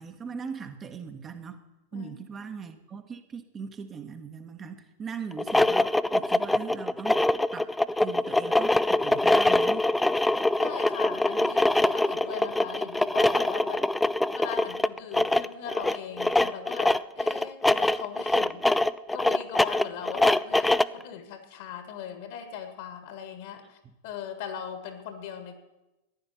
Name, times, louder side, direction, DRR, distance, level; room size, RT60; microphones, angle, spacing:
voice 1, 0.0-1.6 1.9-7.2 7.5-7.7 8.0-9.9 23.8-23.9, right 6 dB, 25° right, 6 dB, 1.2 m, -40 dB
voice 2, 1.9-2.5 10.6-13.9 14.3-25.6, left 8 dB, 50° left, 8 dB, 1.8 m, -39 dB
sound 1, 5.3-21.0, left 2 dB, 5° left, 0.3 m, -24 dB
14.5 x 10.0 x 5.7 m, 0.96 s
figure-of-eight pair, 90°, 0 cm